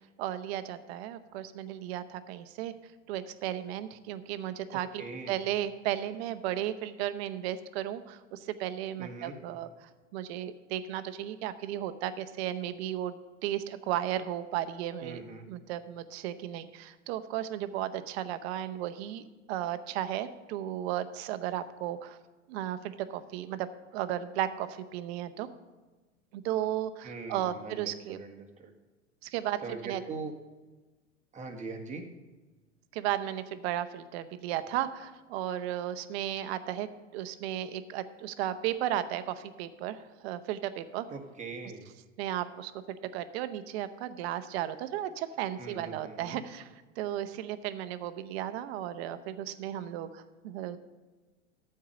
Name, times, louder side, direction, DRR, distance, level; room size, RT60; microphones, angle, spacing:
voice 1, 0.2-2.7 3.1-22.2 22.5-25.5 26.3-28.2 29.2-30.0 32.9-36.9 37.1-41.1 42.2-50.8, right 12 dB, 55° right, 12 dB, 0.9 m, -35 dB
voice 2, 5.0-5.3 9.0-9.3 15.0-15.4 27.0-28.7 29.6-30.3 31.3-32.0 41.1-41.9 45.6-46.4, right 4 dB, 20° right, 2 dB, 1.7 m, -41 dB
13.5 x 4.7 x 6.7 m, 1.2 s
hypercardioid pair, 90°, 37 cm